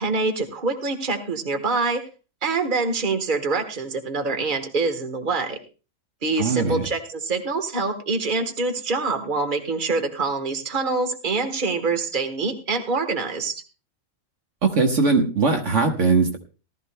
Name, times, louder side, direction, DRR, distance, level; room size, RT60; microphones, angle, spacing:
voice 1, 0.0-2.0 2.4-5.6 6.2-13.6, right 3 dB, 40° right, 6 dB, 1.5 m, -25 dB
voice 2, 6.4-6.9 14.6-16.4, right 4 dB, 65° right, 4 dB, 1.6 m, -20 dB
18.5 x 13.0 x 2.2 m, 0.33 s
omnidirectional pair, 1.4 m